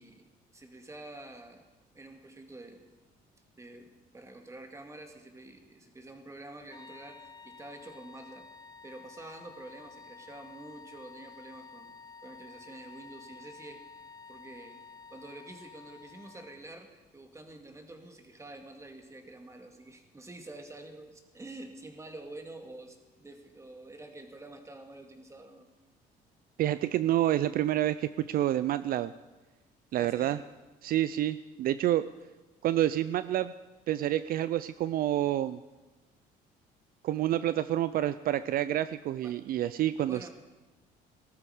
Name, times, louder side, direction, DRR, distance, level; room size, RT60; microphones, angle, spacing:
voice 1, 0.0-1.7 1.9-2.9 3.6-8.5 8.8-11.9 12.2-13.8 14.3-14.8 15.1-25.7 30.0-30.4 39.2-39.6 40.0-40.3, right 2 dB, 15° right, 5 dB, 2.1 m, -48 dB
sound 1, 6.7-16.7, left 5 dB, 20° left, 0.8 m, -51 dB
voice 2, 26.6-29.1 29.9-30.4 30.8-32.1 32.6-33.5 33.9-35.6 37.0-40.3, right 13 dB, 60° right, 14 dB, 0.5 m, -28 dB
18.5 x 13.0 x 4.9 m, 1.2 s
cardioid pair, 110°, 17 cm